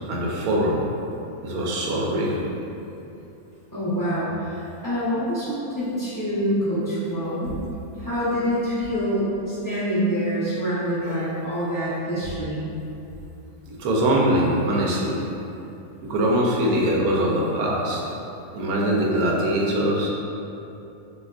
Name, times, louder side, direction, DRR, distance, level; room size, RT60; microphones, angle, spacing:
voice 1, 0.1-0.8 1.4-2.5 11.0-11.3 13.7-15.2 16.0-18.0 18.5-20.1, right 1 dB, 80° right, -3 dB, 1.0 m, -22 dB
voice 2, 3.7-7.5 8.0-12.6, equal, 20° left, -13 dB, 0.5 m, -26 dB
3.4 x 2.8 x 2.3 m, 2.8 s
omnidirectional pair, 1.6 m